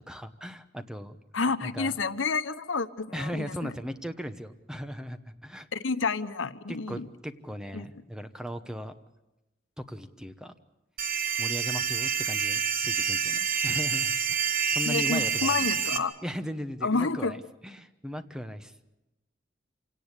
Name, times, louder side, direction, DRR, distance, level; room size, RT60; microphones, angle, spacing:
voice 1, 0.0-1.2 1.6-2.0 3.1-5.7 6.7-8.9 9.8-10.5 11.4-15.7 16.2-18.7, equal, 5° right, 9 dB, 1.0 m, -38 dB
voice 2, 1.3-3.7 5.7-7.1 7.7-7.9 14.8-16.1 16.8-17.4, left 4 dB, 90° left, 12 dB, 1.0 m, -29 dB
sound 1, 11.0-16.0, right 7 dB, 45° right, 1.4 m, -28 dB
27.0 x 18.0 x 8.3 m, 0.99 s
head